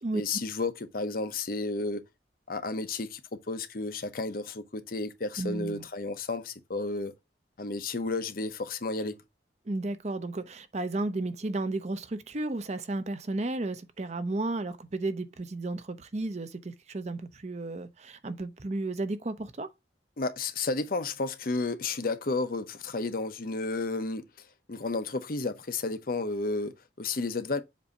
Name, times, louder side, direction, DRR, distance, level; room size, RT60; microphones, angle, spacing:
voice 1, 0.1-2.0 2.5-7.1 7.6-9.2 20.2-24.2 24.7-27.6, left 3 dB, 55° left, 0.8 m, -32 dB
voice 2, 5.4-5.8 9.7-19.7, right 2 dB, 40° right, 0.7 m, -33 dB
7.4 x 2.7 x 5.2 m
head